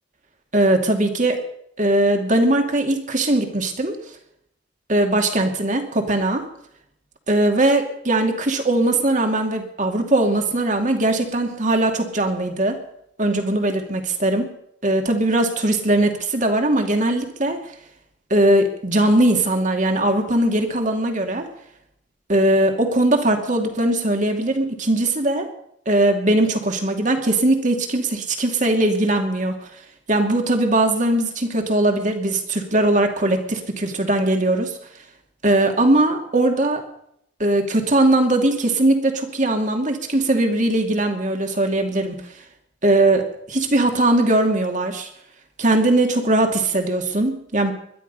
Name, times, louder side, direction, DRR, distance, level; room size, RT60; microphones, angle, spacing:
voice 1, 0.5-1.4 1.8-4.0 4.9-6.4 7.3-12.8 13.2-14.5 14.8-17.6 18.3-21.5 22.3-25.5 25.9-29.6 30.1-34.8 35.4-36.8 37.4-42.2 42.8-45.1 45.6-47.7, right 1 dB, 40° right, 4 dB, 2.5 m, -20 dB
21.5 x 12.0 x 5.5 m, 0.72 s
head